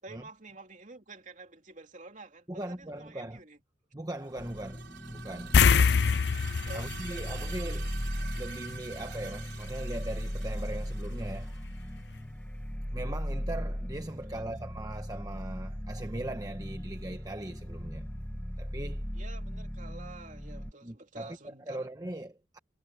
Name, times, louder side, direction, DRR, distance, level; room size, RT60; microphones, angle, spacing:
voice 1, 0.0-3.6 6.7-7.9 14.2-14.7 19.1-21.9, right 3 dB, 45° right, 3.1 m, -49 dB
voice 2, 2.5-3.4 3.9-5.6 6.7-7.9 8.3-11.6 12.9-18.1 18.6-19.1 20.8-22.6, right 1 dB, 20° right, 1.0 m, -40 dB
sound 1, 4.2-12.0, right 8 dB, 80° right, 4.6 m, -47 dB
sound 2, 4.4-20.7, equal, 10° left, 1.2 m, -38 dB
sound 3, 5.5-8.3 8.6-8.8 11.7-11.8 12.1-12.2, left 6 dB, 65° left, 0.5 m, -24 dB
head